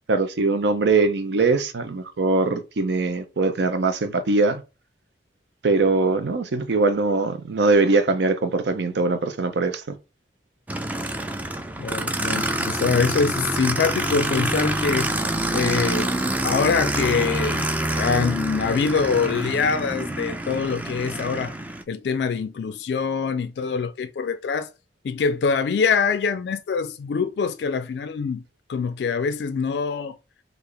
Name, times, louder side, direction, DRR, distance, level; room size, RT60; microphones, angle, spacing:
voice 1, 0.1-4.6 5.6-10.0, right 3 dB, 70° right, 0.5 m, -21 dB
Aircraft, 10.7-21.8, right 1 dB, 10° right, 0.3 m, -26 dB
voice 2, 11.8-15.1 15.5-16.1 16.4-21.6 21.9-24.7 25.0-28.4 28.7-30.2, left 5 dB, 65° left, 0.3 m, -24 dB
3.3 x 2.4 x 3.6 m
head